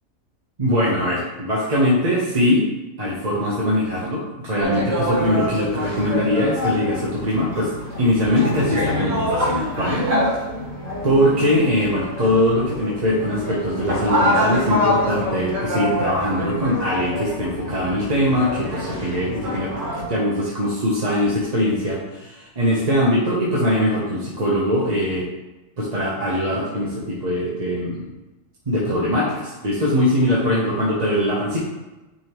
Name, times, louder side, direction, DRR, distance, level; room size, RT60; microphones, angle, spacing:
voice 1, 0.6-2.7 3.0-7.7 8.0-10.1 11.0-19.7 20.1-25.3 25.8-28.1 28.7-31.6, left 1 dB, 30° right, -6 dB, 1.0 m, -21 dB
sound 1, 4.6-20.1, equal, 65° right, 1.9 m, -25 dB
9.5 x 3.5 x 3.0 m, 1.1 s
omnidirectional pair, 1.5 m